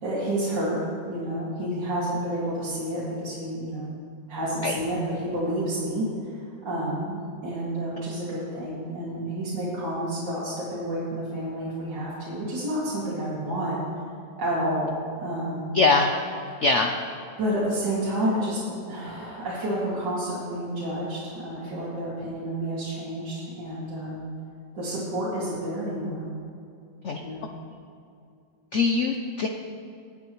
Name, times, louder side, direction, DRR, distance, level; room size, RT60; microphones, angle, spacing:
voice 1, 0.0-0.8 1.1-3.9 4.3-7.2 7.4-13.7 14.4-15.8 17.4-18.6 18.9-24.3 24.7-26.2 27.2-27.4, right 1 dB, 70° right, -9 dB, 2.9 m, -30 dB
voice 2, 15.7-16.1 16.6-17.0 27.0-27.2 28.7-29.5, left 3 dB, 70° left, 3 dB, 0.7 m, -22 dB
19.0 x 8.6 x 3.1 m, 2.5 s
omnidirectional pair, 2.0 m